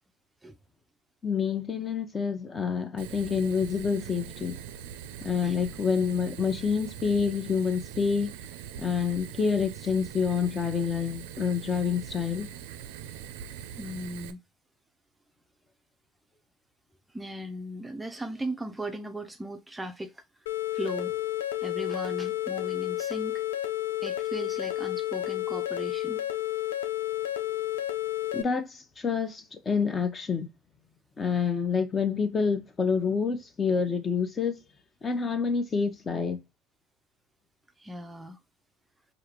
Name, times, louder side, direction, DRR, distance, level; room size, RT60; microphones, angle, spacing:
voice 1, 1.2-4.6 5.2-8.3 8.8-12.5 28.3-30.5 31.2-34.6 35.0-36.4, left 6 dB, 30° left, 0.8 m, -28 dB
Fire, 3.0-14.3, right 10 dB, 70° right, 0.4 m, -42 dB
voice 2, 13.8-14.4 17.1-20.2 20.7-21.2 21.6-23.4 24.0-26.3 37.8-38.4, right 1 dB, 10° right, 0.5 m, -37 dB
sound 1, 20.5-28.4, left 13 dB, 80° left, 0.4 m, -31 dB
4.9 x 2.6 x 2.9 m
hypercardioid pair, 70°, 0 cm